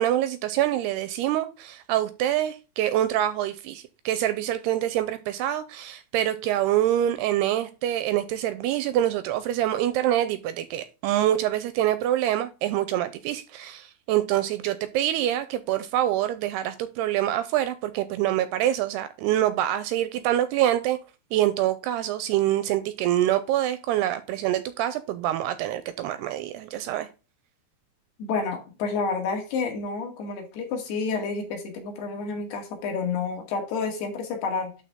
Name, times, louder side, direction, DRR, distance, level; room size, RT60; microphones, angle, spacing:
voice 1, 0.0-21.0 21.3-27.1, right 12 dB, 85° right, 2.4 m, -25 dB
voice 2, 28.2-34.7, left 4 dB, 65° left, 4.1 m, -29 dB
12.0 x 4.2 x 3.7 m
omnidirectional pair, 5.2 m